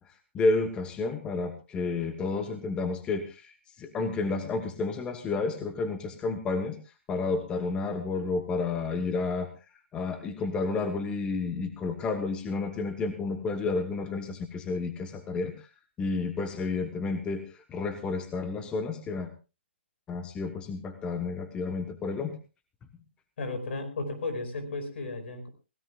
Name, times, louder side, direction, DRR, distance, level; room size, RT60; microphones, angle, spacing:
voice 1, 0.3-6.8 7.1-9.5 9.9-15.7 16.0-19.3 20.1-22.4, left 3 dB, 15° left, 9 dB, 1.2 m, -31 dB
voice 2, 23.4-25.5, left 3 dB, 70° left, 9 dB, 5.0 m, -34 dB
23.0 x 17.0 x 2.4 m, 0.30 s
hypercardioid pair, 155°, 7 cm